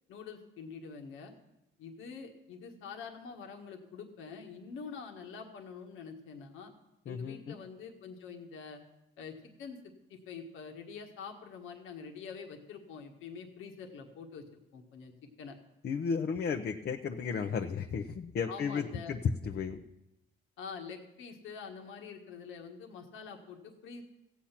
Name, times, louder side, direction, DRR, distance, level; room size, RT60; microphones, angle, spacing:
voice 1, 0.1-1.3 1.8-6.7 7.0-8.8 9.2-9.8 10.1-15.1 15.4-15.5 18.5-19.1 20.6-24.0, left 5 dB, 90° left, 3 dB, 1.5 m, -46 dB
voice 2, 7.1-7.6 15.8-19.8, left 6 dB, 55° left, 4 dB, 0.8 m, -34 dB
15.0 x 8.7 x 5.9 m, 0.89 s
cardioid pair, 90°, 20 cm